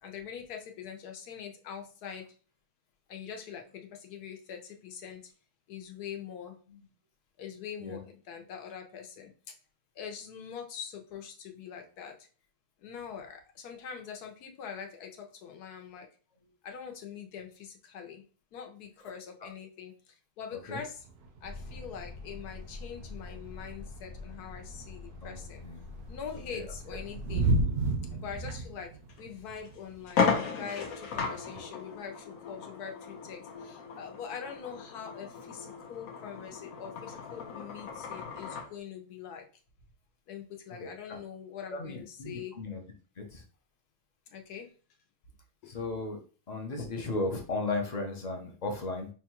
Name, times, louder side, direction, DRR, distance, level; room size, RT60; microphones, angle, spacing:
voice 1, 0.0-2.3 3.1-5.3 5.7-6.6 7.4-9.3 9.9-12.3 12.8-16.1 16.6-18.2 18.5-21.1 21.4-25.6 26.1-27.5 28.1-39.5 40.3-42.5 44.3-44.7 45.6-45.8, left 7 dB, 85° left, 4 dB, 1.3 m, -43 dB
sound 1, 20.7-22.1 22.4-22.5 22.8-25.5 26.1-31.6, right 2 dB, 60° right, 0.7 m, -34 dB
Truck, 21.4-27.5, left 3 dB, 20° right, 0.6 m, -45 dB
voice 2, 25.2-25.8 26.5-26.7 40.8-41.2 41.7-42.8 43.2-43.4 45.7-46.2 46.5-49.1, left 2 dB, 50° left, 3 dB, 0.5 m, -35 dB
sound 2, 29.1-29.2 29.6-29.7 30.1-38.7, left 5 dB, 70° left, 1.1 m, -35 dB
5.3 x 2.3 x 2.9 m, 0.38 s
omnidirectional pair, 1.6 m